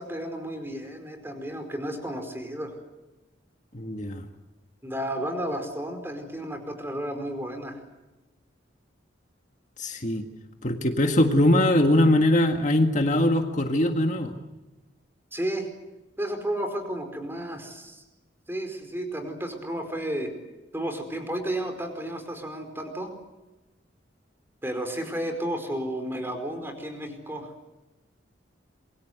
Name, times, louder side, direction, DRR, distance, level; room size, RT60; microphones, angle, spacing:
voice 1, 0.0-2.7 4.8-7.8 15.3-15.7 16.2-18.0 18.5-20.3 20.7-23.1 24.6-27.5, right 1 dB, 10° right, 6 dB, 4.8 m, -32 dB
voice 2, 3.7-4.2 9.8-10.2 10.6-14.3, left 1 dB, 40° left, 5 dB, 1.8 m, -22 dB
27.5 x 23.0 x 8.0 m, 1.1 s
head